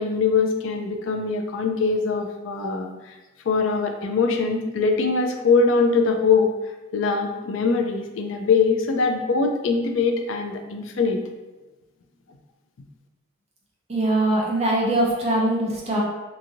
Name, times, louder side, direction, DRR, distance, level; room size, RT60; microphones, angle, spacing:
voice 1, 0.0-2.9 3.5-6.5 6.9-11.2, left 4 dB, 80° left, 4 dB, 0.4 m, -22 dB
voice 2, 13.9-16.0, right 1 dB, 35° right, -4 dB, 0.7 m, -22 dB
2.9 x 2.6 x 2.5 m, 1.1 s
head